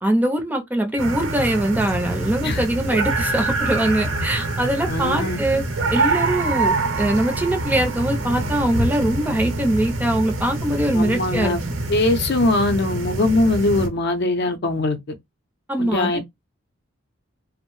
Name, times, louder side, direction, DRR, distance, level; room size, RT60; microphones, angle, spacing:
voice 1, 0.0-5.6 5.9-11.6 15.7-16.2, right 1 dB, 10° right, 0.5 m, -22 dB
sound 1, 1.0-13.9, right 2 dB, 65° right, 0.8 m, -25 dB
voice 2, 4.9-5.4 10.9-11.6 11.9-15.0 15.8-16.2, left 2 dB, 55° left, 0.6 m, -21 dB
2.6 x 2.0 x 3.0 m
head